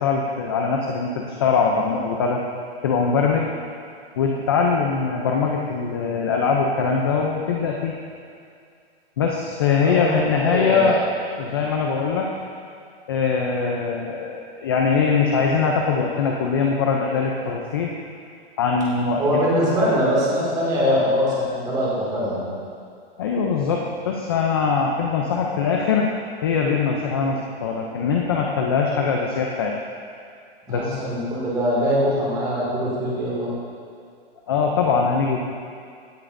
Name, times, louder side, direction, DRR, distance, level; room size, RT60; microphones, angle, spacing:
voice 1, 0.0-2.4 2.8-3.5 4.2-7.9 9.2-11.0 11.4-12.3 13.1-18.0 18.6-19.4 23.2-26.1 26.4-29.7 30.7-31.0 34.5-35.4, left 5 dB, 25° left, 0 dB, 0.4 m, -22 dB
voice 2, 9.8-10.2 10.4-11.0 19.2-22.5 30.7-33.5, equal, 15° right, -6 dB, 2.1 m, -22 dB
16.5 x 9.7 x 2.6 m, 2.3 s
hypercardioid pair, 175°, 32 cm